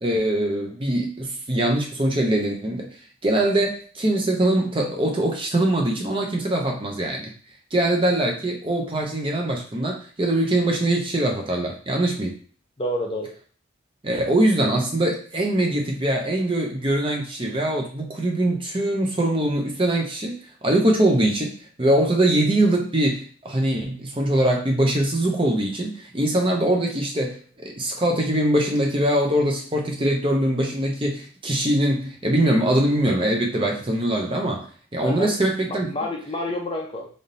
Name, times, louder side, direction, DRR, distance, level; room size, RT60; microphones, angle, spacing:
voice 1, 0.0-2.9 3.2-7.3 7.7-12.4 14.0-20.4 20.6-21.5 21.8-27.4 27.8-34.7 34.9-35.9, right 1 dB, 25° right, 1 dB, 0.7 m, -22 dB
voice 2, 12.8-13.3 35.0-35.3 35.6-37.1, left 1 dB, 25° left, 1 dB, 0.6 m, -28 dB
3.6 x 2.7 x 3.9 m, 0.43 s
head